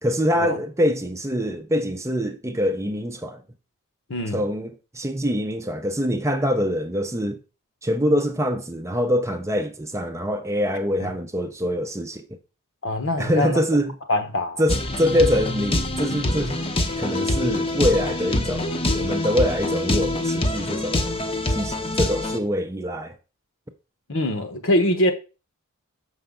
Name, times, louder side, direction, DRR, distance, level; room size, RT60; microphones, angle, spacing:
voice 1, 0.0-3.4 4.3-7.4 7.8-12.2 13.2-13.9 14.6-16.6 17.0-21.1 21.5-23.1, equal, 15° right, 0.6 m, -24 dB
voice 2, 4.1-4.4 11.0-11.1 12.8-13.6 14.1-14.6 24.1-25.1, left 1 dB, 60° left, 1.1 m, -23 dB
sound 1, 14.7-22.4, left 1 dB, 25° left, 0.8 m, -25 dB
6.8 x 5.6 x 3.8 m
head